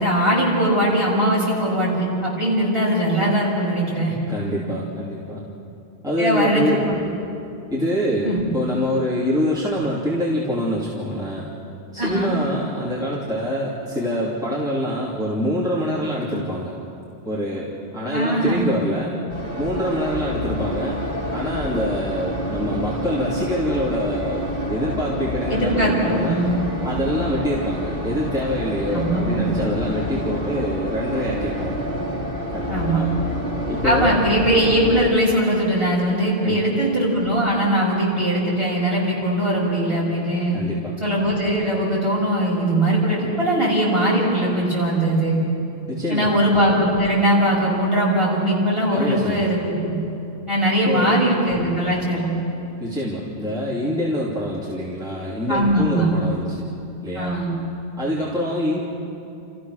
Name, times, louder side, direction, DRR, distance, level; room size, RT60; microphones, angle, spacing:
voice 1, 0.0-4.1 6.2-7.0 8.2-8.5 12.0-12.3 18.1-18.8 25.5-26.6 28.9-29.5 32.7-33.0 33.8-40.6 41.0-45.4 46.1-50.0 50.5-52.3 55.5-56.1 57.1-57.5, right 1 dB, 25° right, -6 dB, 6.3 m, -20 dB
voice 2, 4.3-5.5 6.0-6.8 7.7-11.5 11.9-16.7 17.2-19.2 19.6-21.0 21.3-26.4 26.8-31.8 32.5-33.1 33.7-34.2 36.4-36.7 40.5-40.9 45.9-46.3 48.9-49.6 50.8-51.2 52.8-56.6 57.0-57.4 58.0-58.8, equal, 5° right, -8 dB, 2.7 m, -25 dB
sound 1, 19.3-35.1, equal, 55° right, 2.2 m, -28 dB
30.0 x 15.0 x 6.5 m, 2.7 s
omnidirectional pair, 1.1 m